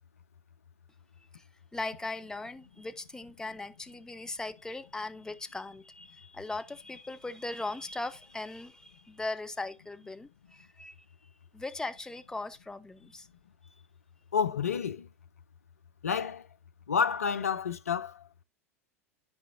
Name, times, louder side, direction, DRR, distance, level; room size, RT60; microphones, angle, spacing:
voice 1, 1.7-11.0 11.5-13.3, left 2 dB, 10° left, 0.6 m, -39 dB
voice 2, 14.3-15.1 16.0-16.5 16.9-18.2, left 6 dB, 75° left, 0.5 m, -29 dB
12.0 x 4.9 x 2.6 m
figure-of-eight pair, 80°, 8 cm